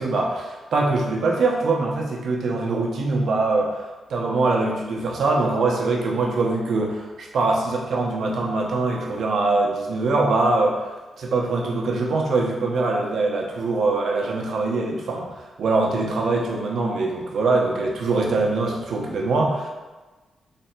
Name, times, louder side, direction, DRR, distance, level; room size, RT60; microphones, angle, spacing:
voice 1, 0.0-3.8 4.1-10.8 11.2-15.3 15.6-19.7, right 3 dB, 75° right, -1 dB, 0.8 m, -23 dB
3.3 x 3.1 x 4.5 m, 1.2 s
cardioid pair, 60°, 0 cm